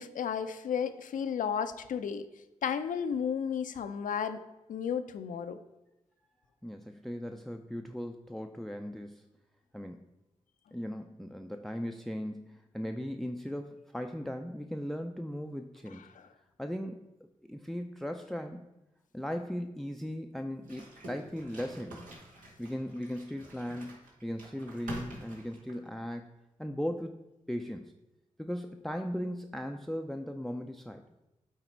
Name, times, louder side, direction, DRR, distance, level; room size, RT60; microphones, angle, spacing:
voice 1, 0.0-2.2 2.6-4.4 4.7-5.6, left 7 dB, 75° left, 10 dB, 0.5 m, -33 dB
voice 2, 6.6-9.3 9.7-10.1 10.7-16.1 16.6-17.0 17.4-18.7 19.1-22.0 22.6-26.3 26.6-27.2 27.5-27.9 28.4-31.0, equal, ahead, 5 dB, 0.5 m, -38 dB
sound 1, 20.6-26.1, right 1 dB, 80° right, 1.7 m, -47 dB
8.0 x 4.0 x 4.5 m, 0.95 s
supercardioid pair, 45°, 14 cm